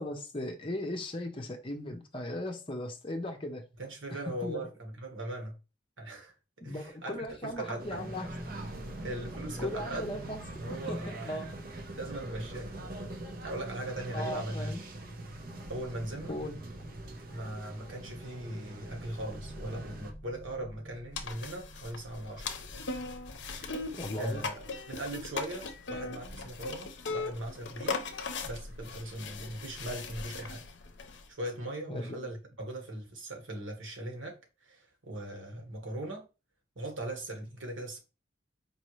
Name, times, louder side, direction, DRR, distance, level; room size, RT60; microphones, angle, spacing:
voice 1, 0.0-3.6 4.4-4.7 6.6-8.3 9.6-10.4 10.7-11.5 14.1-14.8 16.3-16.6 23.9-24.4 31.9-32.3, left 1 dB, 30° left, 0.8 m, -37 dB
voice 2, 3.8-5.6 6.0-6.3 6.6-7.9 9.0-10.1 10.6-11.4 11.9-12.9 13.4-14.7 15.7-16.4 17.3-22.5 23.8-23.9 24.2-24.6 24.9-28.0 28.4-30.7 31.3-36.2 36.7-38.0, right 1 dB, 85° right, 1.4 m, -39 dB
sound 1, 7.8-20.1, right 2 dB, 50° right, 0.8 m, -43 dB
sound 2, 15.2-26.5, equal, 15° right, 0.7 m, -52 dB
sound 3, 21.1-31.3, left 4 dB, 70° left, 0.6 m, -39 dB
4.7 x 2.9 x 3.1 m
head